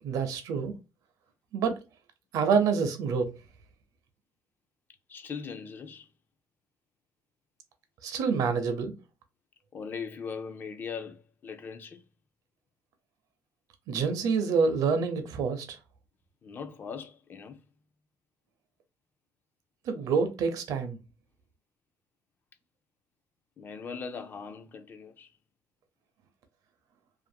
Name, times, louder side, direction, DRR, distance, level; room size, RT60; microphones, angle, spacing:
voice 1, 0.0-0.7 1.5-1.8 2.3-3.3 8.0-8.9 13.9-15.8 19.9-21.0, right 5 dB, 70° right, 0.6 m, -27 dB
voice 2, 5.1-6.1 9.7-12.0 16.4-17.6 23.6-25.3, left 5 dB, 30° left, 0.3 m, -40 dB
2.5 x 2.5 x 2.6 m
cardioid pair, 155°, 6 cm